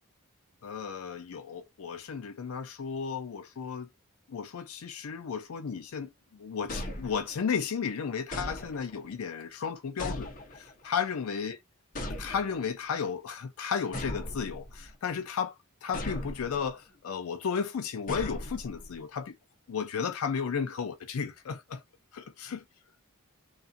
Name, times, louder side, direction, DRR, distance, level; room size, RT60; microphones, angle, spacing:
voice 1, 0.6-3.9 4.3-6.1 6.4-11.6 12.2-15.5 15.8-19.4 19.7-21.8 22.1-22.6, left 6 dB, 85° left, 0.4 m, -34 dB
sound 1, 6.7-7.6 8.3-9.1 10.0-10.9 11.9-12.8 13.9-15.0 15.9-16.7 18.1-19.0, left 1 dB, 40° left, 0.7 m, -38 dB
2.4 x 2.4 x 2.5 m
head